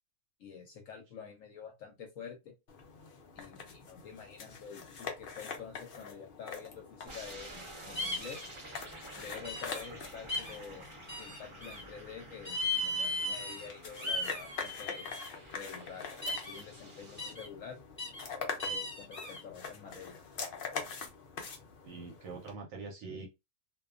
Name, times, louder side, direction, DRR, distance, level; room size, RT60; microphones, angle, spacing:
voice 1, 0.4-2.5 3.3-8.5 9.2-10.9 11.2-15.1 15.5-17.8 18.6-20.2, left 6 dB, 65° left, 0.9 m, -48 dB
sound 1, 2.7-22.5, left 5 dB, 85° left, 0.4 m, -45 dB
sound 2, 7.1-17.3, right 2 dB, 35° right, 0.4 m, -51 dB
sound 3, 7.9-8.5 9.4-9.9 10.3-10.6 11.1-11.8 12.4-13.7 14.0-15.3 16.2-16.6 17.2-17.5 18.0-18.2 18.6-19.4, left 1 dB, 10° left, 1.1 m, -36 dB
voice 2, 21.8-23.3, right 4 dB, 65° right, 0.9 m, -44 dB
2.6 x 2.2 x 2.4 m
omnidirectional pair, 1.7 m